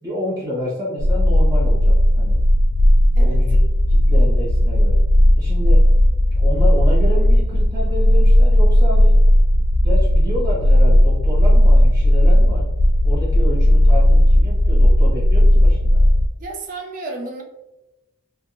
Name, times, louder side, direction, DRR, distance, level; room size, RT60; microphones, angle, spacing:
voice 1, 0.0-2.4 3.2-3.6 3.9-5.0 5.4-5.8 6.4-9.2 9.8-12.7 13.0-16.0, left 1 dB, 15° right, -8 dB, 1.1 m, -29 dB
sound 1, 1.0-16.3, left 1 dB, 75° left, 0.3 m, -14 dB
voice 2, 16.4-17.4, right 2 dB, 40° right, 2 dB, 0.4 m, -32 dB
3.5 x 2.0 x 2.5 m, 0.95 s
head